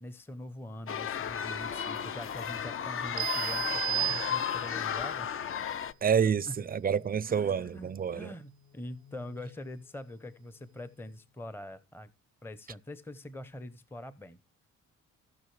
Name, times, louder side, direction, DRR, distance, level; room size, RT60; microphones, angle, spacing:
voice 1, 0.0-5.3 6.5-6.6 7.3-12.1 12.4-14.4, left 1 dB, 5° left, 0.8 m, -44 dB
sound 1, 0.9-5.9, left 8 dB, 45° left, 0.6 m, -34 dB
sound 2, 3.1-11.4, left 6 dB, 85° left, 1.8 m, -61 dB
sound 3, 3.2-4.9, right 16 dB, 80° right, 0.5 m, -33 dB
voice 2, 6.0-8.3, right 7 dB, 30° right, 0.5 m, -28 dB
18.5 x 6.4 x 3.2 m
cardioid pair, 90°, 30 cm